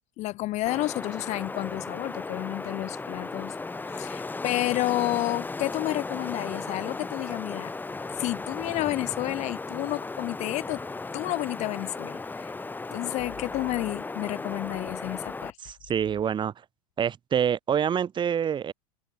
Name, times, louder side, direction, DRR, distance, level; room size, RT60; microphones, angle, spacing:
voice 1, 0.2-3.6 3.8-7.7 8.2-10.8 11.1-12.5 12.9-15.5, left 18 dB, 35° left, 0.7 m, -30 dB
Wind, 0.7-15.5, left 3 dB, 10° left, 2.0 m, -36 dB
voice 2, 15.6-16.5 17.0-18.7, right 8 dB, 25° right, 2.0 m, -26 dB
open air
hypercardioid pair, 95°, 19 cm